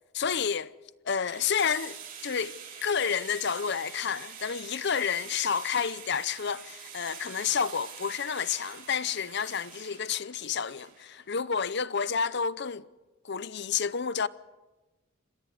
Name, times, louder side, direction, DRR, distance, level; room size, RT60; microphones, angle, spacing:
voice 1, 0.1-0.7 1.0-2.0 2.2-12.8 13.2-14.3, left 6 dB, 55° left, 0.7 m, -30 dB
sound 1, 1.2-11.2, right 7 dB, 40° right, 6.6 m, -45 dB
28.5 x 15.5 x 8.3 m
head